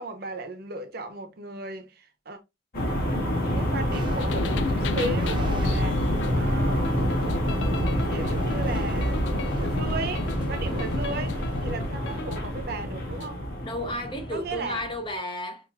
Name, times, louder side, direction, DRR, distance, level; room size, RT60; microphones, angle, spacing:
voice 1, 0.0-2.4 3.3-13.4 14.3-14.8, right 2 dB, 60° right, 0.7 m, -36 dB
sound 1, 2.7-15.1, equal, 55° left, 1.6 m, -28 dB
sound 2, 3.9-11.8, right 1 dB, 30° right, 0.5 m, -35 dB
sound 3, 4.2-13.3, left 5 dB, 90° left, 0.3 m, -36 dB
voice 2, 13.6-15.7, left 1 dB, 30° left, 0.7 m, -32 dB
5.7 x 2.6 x 2.3 m
head